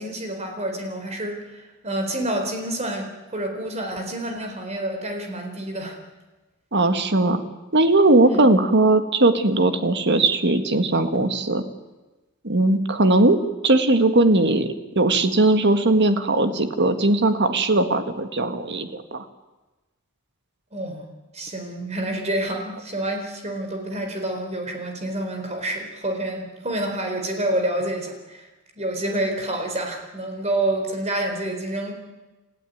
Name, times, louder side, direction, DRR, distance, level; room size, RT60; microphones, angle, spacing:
voice 1, 0.0-6.0 8.3-8.4 20.7-21.0 21.3-28.5 28.8-31.9, right 1 dB, 30° right, 4 dB, 4.3 m, -28 dB
voice 2, 6.7-7.4 7.7-11.6 12.4-13.4 13.6-19.2, right 2 dB, 50° right, 8 dB, 1.7 m, -19 dB
29.5 x 14.5 x 9.4 m, 1.1 s
head